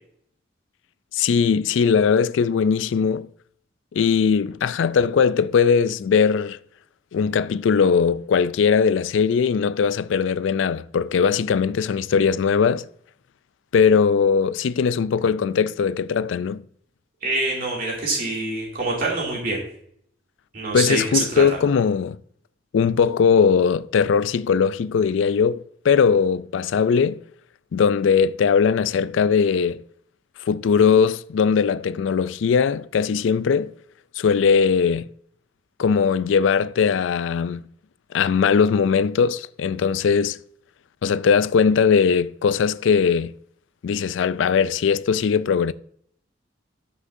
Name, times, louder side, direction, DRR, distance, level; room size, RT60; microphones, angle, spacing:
voice 1, 1.1-3.3 3.9-6.6 7.1-12.9 13.7-16.6 20.7-22.2 22.7-27.2 27.7-29.8 30.5-33.7 34.2-35.1 35.8-37.6 38.1-40.4 41.0-43.3 43.8-45.7, left 6 dB, 85° left, 0.4 m, -20 dB
voice 2, 17.2-19.6 20.5-21.4, right 2 dB, 50° right, 2.5 m, -25 dB
13.0 x 6.2 x 2.6 m
head